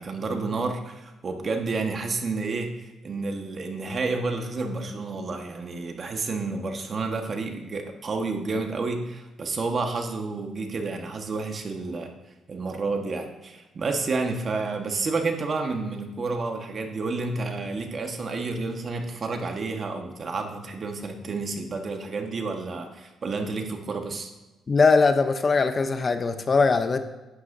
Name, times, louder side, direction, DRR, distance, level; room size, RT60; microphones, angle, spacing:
voice 1, 0.0-12.1 12.5-24.3, right 3 dB, 45° right, 4 dB, 1.4 m, -30 dB
voice 2, 24.7-27.0, left 4 dB, 35° left, 9 dB, 0.7 m, -21 dB
11.0 x 9.5 x 2.7 m, 1.1 s
cardioid pair, 90°, 0 cm